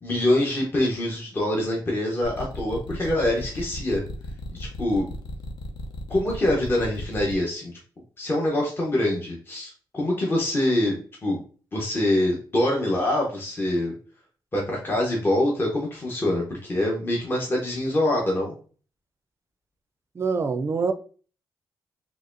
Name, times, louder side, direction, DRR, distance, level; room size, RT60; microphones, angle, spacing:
voice 1, 0.0-4.0 4.5-5.1 6.1-7.7 8.2-11.4 11.7-13.9 14.5-18.6, left 1 dB, 30° left, 0.9 m, -25 dB
sound 1, 2.2-7.3, left 1 dB, 65° left, 0.7 m, -35 dB
voice 2, 20.1-20.9, right 5 dB, 35° right, 0.4 m, -25 dB
4.0 x 3.0 x 2.5 m
cardioid pair, 105°, 8 cm